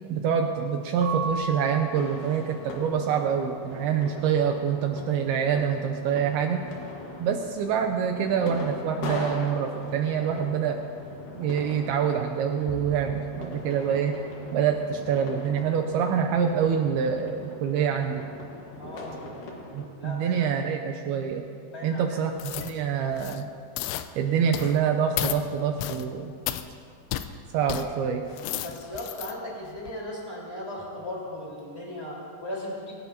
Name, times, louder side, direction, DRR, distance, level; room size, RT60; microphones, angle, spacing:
voice 1, 0.1-6.7 7.2-10.8 11.4-14.2 14.5-18.2 19.7-21.5 21.8-23.5 24.2-26.3 27.5-28.3, right 7 dB, 85° right, 4 dB, 2.2 m, -26 dB
Keyboard (musical) / Bell, 1.0-3.4, right 3 dB, 55° right, 3.8 m, -36 dB
sound 1, 1.9-19.9, left 2 dB, 55° left, 2.5 m, -40 dB
voice 2, 18.8-19.2 20.0-20.5 21.6-23.0 28.6-32.9, left 1 dB, 5° left, -5 dB, 3.7 m, -38 dB
sound 2, 22.4-22.8 23.1-23.4 23.8-24.1 24.5-24.8 25.2-25.4 25.8-26.1 26.5-26.7 27.1-27.3 27.7-27.9 28.3-29.3 29.8-29.9, left 13 dB, 85° left, 3.0 m, -32 dB
22.5 x 17.0 x 2.9 m, 2.3 s
omnidirectional pair, 5.3 m